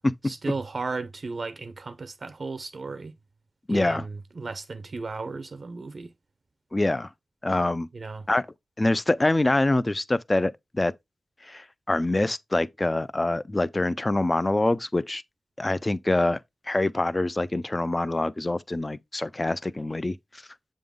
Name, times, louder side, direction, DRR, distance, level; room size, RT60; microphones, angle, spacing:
voice 1, 0.2-3.1 3.7-6.1 7.9-8.3, right 3 dB, 50° right, 0.5 m, -35 dB
voice 2, 3.7-4.1 6.7-7.1 7.4-7.9 8.3-8.4 8.8-10.9 11.4-15.2 15.6-16.4 16.7-20.2, left 2 dB, 20° left, 0.3 m, -25 dB
7.7 x 3.7 x 3.5 m
wide cardioid pair, 140°, 0 cm